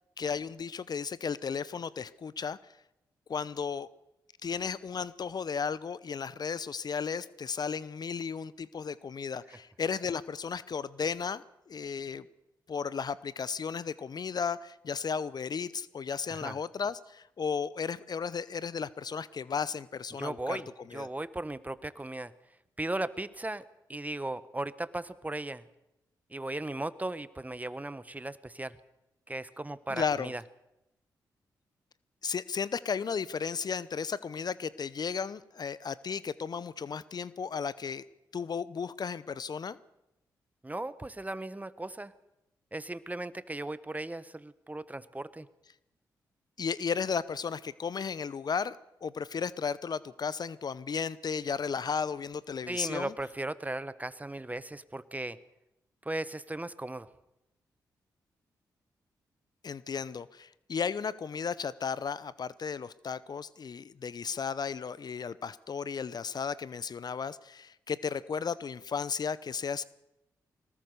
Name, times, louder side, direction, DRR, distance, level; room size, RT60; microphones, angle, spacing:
voice 1, 0.2-2.6 3.3-3.9 4.4-12.3 12.7-20.6 20.9-21.1 29.9-30.3 32.2-38.0 38.3-39.8 46.6-53.1 59.6-69.8, left 6 dB, 55° left, 18 dB, 0.8 m, -34 dB
voice 2, 20.1-22.3 22.8-23.6 23.9-25.6 26.3-28.8 29.3-30.4 40.6-42.1 42.7-45.5 52.7-55.4 56.0-57.1, right 2 dB, 20° right, 16 dB, 1.3 m, -37 dB
21.5 x 19.0 x 6.8 m, 0.90 s
hypercardioid pair, 40°, 8 cm